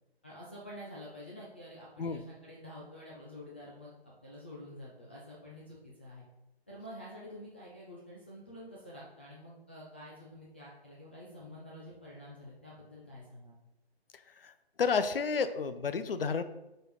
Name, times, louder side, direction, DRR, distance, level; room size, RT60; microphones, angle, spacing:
voice 1, 0.2-6.2 6.7-13.6, left 1 dB, 10° left, -6 dB, 0.4 m, -48 dB
voice 2, 14.8-16.4, left 5 dB, 60° left, 11 dB, 0.7 m, -30 dB
6.3 x 4.4 x 4.9 m, 0.94 s
figure-of-eight pair, 140°, 32 cm